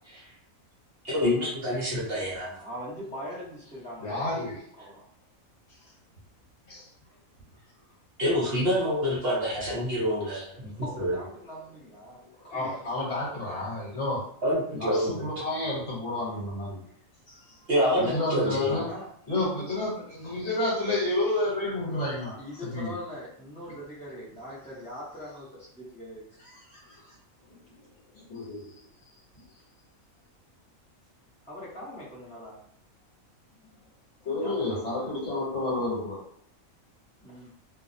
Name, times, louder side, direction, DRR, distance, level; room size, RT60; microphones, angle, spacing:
voice 1, 1.1-2.6 8.2-10.7 11.0-11.2 14.4-15.2 17.7-18.8, equal, 55° right, -5 dB, 0.8 m, -26 dB
voice 2, 2.5-4.2 4.8-5.0 10.7-12.8 17.9-18.1 18.4-19.1 19.4-19.6 21.9-22.1 22.4-27.2 31.5-32.6 34.4-34.8 37.2-37.5, equal, 10° left, -8 dB, 0.5 m, -42 dB
voice 3, 4.0-4.6 6.7-6.9 12.5-14.2 14.7-16.8 18.0-18.8 19.3-22.4 22.7-22.9 27.7-27.8 28.1-28.7 34.2-36.2, left 2 dB, 60° left, -6 dB, 1.3 m, -30 dB
2.5 x 2.0 x 2.6 m, 0.66 s
omnidirectional pair, 1.4 m